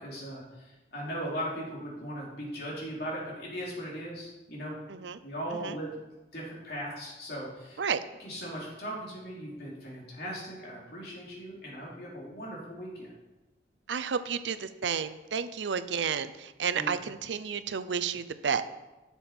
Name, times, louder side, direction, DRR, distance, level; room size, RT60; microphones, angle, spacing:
voice 1, 0.0-4.8 5.2-6.0 6.3-7.8 8.2-13.1 16.7-16.9, equal, 60° left, -4 dB, 3.2 m, -38 dB
voice 2, 4.9-5.2 5.5-5.8 7.8-8.0 13.9-18.6, right 6 dB, 85° right, 12 dB, 0.5 m, -31 dB
11.0 x 7.0 x 4.4 m, 1.1 s
head